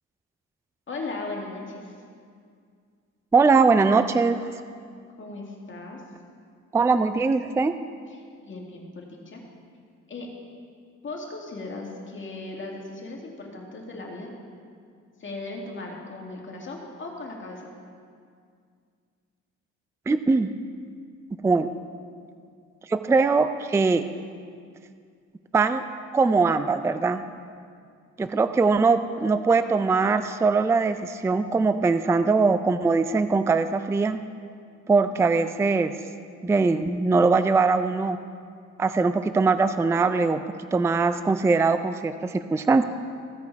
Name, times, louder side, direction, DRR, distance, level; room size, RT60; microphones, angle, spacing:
voice 1, 0.9-1.9 5.2-6.0 8.1-9.4 10.1-10.3 11.0-14.3 15.2-17.7, left 2 dB, 40° left, -1 dB, 2.1 m, -37 dB
voice 2, 3.3-4.5 6.7-7.7 20.1-20.5 21.4-21.7 22.9-24.0 25.5-25.8 26.1-27.2 28.2-34.2 34.9-35.9 36.4-38.2 38.8-40.4 40.7-42.8, right 4 dB, 10° right, 11 dB, 0.3 m, -21 dB
15.5 x 5.2 x 4.6 m, 2.2 s
cardioid pair, 90°, 30 cm